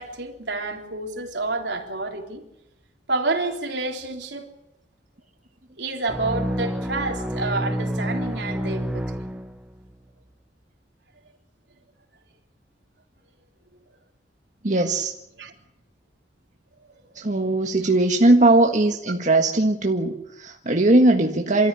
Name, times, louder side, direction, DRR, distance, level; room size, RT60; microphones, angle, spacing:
voice 1, 0.0-2.4 3.1-4.5 5.8-9.2 15.3-15.5, right 2 dB, 75° right, 3.8 m, -29 dB
sound 1, 6.1-9.9, equal, 5° right, 1.1 m, -28 dB
voice 2, 14.6-15.1 17.1-21.7, right 2 dB, 45° right, 1.7 m, -19 dB
27.5 x 14.0 x 9.9 m
head